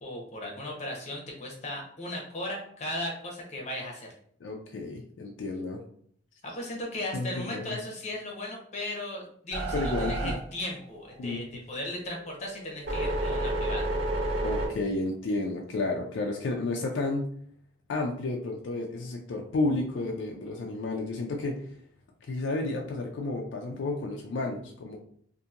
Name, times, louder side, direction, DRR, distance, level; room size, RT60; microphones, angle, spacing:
voice 1, 0.0-4.1 6.4-13.9, left 1 dB, 35° left, 0 dB, 0.7 m, -37 dB
voice 2, 4.4-5.8 7.1-7.8 9.7-10.3 11.2-11.5 14.4-17.3 17.9-21.6 22.3-25.0, left 2 dB, 70° left, 1 dB, 0.4 m, -31 dB
sound 1, 9.5-11.3 11.8-14.7, right 1 dB, 65° right, 1.4 m, -30 dB
2.8 x 2.6 x 2.4 m, 0.62 s
head